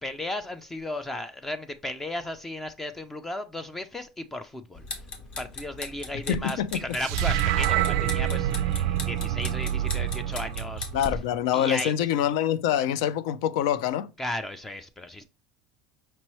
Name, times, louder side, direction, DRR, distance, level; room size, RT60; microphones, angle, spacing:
voice 1, 0.0-4.8 5.4-10.9 11.5-11.9 14.2-15.2, left 1 dB, 10° left, 0.4 m, -35 dB
sound 1, 4.7-11.2, left 3 dB, 40° left, 1.2 m, -40 dB
voice 2, 6.3-6.7 10.9-14.1, left 10 dB, 75° left, 0.4 m, -25 dB
sound 2, 7.0-11.4, right 12 dB, 70° right, 0.3 m, -27 dB
5.3 x 3.0 x 3.0 m
supercardioid pair, 140°, 3 cm